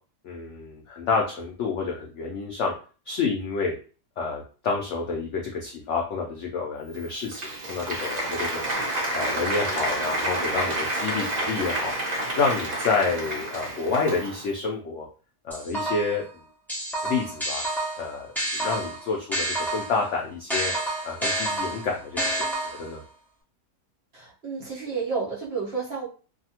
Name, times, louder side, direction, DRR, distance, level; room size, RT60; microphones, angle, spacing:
voice 1, 0.2-2.7 3.1-3.7 4.2-8.6 9.1-11.9 12.4-15.1 15.4-16.2 17.0-17.7 18.0-20.7 21.0-23.0, left 4 dB, 80° left, 0 dB, 0.6 m, -29 dB
Applause, 6.9-14.6, right 1 dB, 90° right, 0.3 m, -29 dB
sound 1, 15.5-16.2 16.7-20.0 20.5-23.0, right 1 dB, ahead, 0.4 m, -29 dB
voice 2, 24.1-26.1, right 5 dB, 45° right, -5 dB, 1.0 m, -31 dB
2.6 x 2.4 x 2.8 m, 0.38 s
omnidirectional pair, 1.8 m